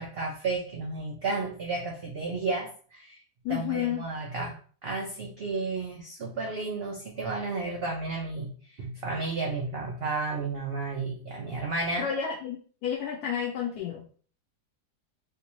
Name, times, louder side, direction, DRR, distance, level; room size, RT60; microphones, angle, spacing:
voice 1, 0.0-3.2 3.5-12.1, right 3 dB, 85° right, 0 dB, 0.5 m, -32 dB
voice 2, 3.4-4.0 12.0-14.0, left 8 dB, 75° left, -2 dB, 1.1 m, -31 dB
3.3 x 2.8 x 2.9 m, 0.43 s
omnidirectional pair, 1.8 m